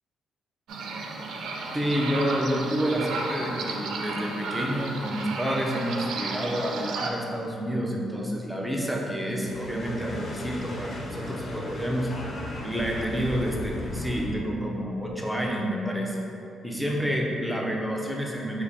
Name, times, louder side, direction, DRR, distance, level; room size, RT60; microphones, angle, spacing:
sound 1, 0.7-7.1, right 3 dB, 80° right, 0.3 m, -33 dB
voice 1, 1.7-12.1 12.6-16.2 16.6-18.6, equal, 5° right, -2 dB, 0.6 m, -29 dB
sound 2, 9.2-14.4, left 1 dB, 60° left, 0.6 m, -36 dB
4.8 x 2.1 x 2.7 m, 2.7 s
supercardioid pair, 60°, 0 cm